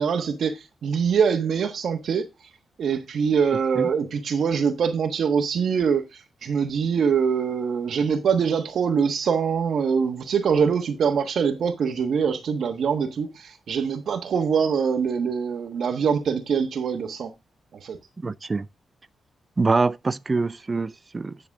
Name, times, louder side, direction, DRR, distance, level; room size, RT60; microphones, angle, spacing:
voice 1, 0.0-2.3 2.8-17.3 17.8-18.0, right 6 dB, 70° right, 1.2 m, -24 dB
voice 2, 18.2-18.7 19.6-21.4, right 3 dB, 30° right, 0.5 m, -24 dB
9.9 x 6.7 x 3.5 m
cardioid pair, 90°, 0 cm